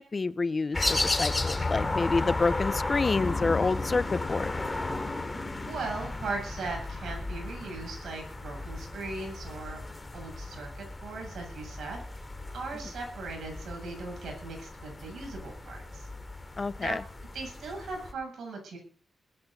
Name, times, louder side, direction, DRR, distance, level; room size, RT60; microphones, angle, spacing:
voice 1, 0.0-4.5 16.6-17.0, left 3 dB, 35° left, 17 dB, 0.6 m, -28 dB
sound 1, 0.7-18.1, left 2 dB, 20° left, 3.0 m, -34 dB
voice 2, 5.7-9.8 10.1-12.0 12.5-16.1 16.8-17.0 17.3-18.8, right 3 dB, 85° right, 2 dB, 7.9 m, -38 dB
20.0 x 14.0 x 4.1 m, 0.44 s
wide cardioid pair, 110°, 0 cm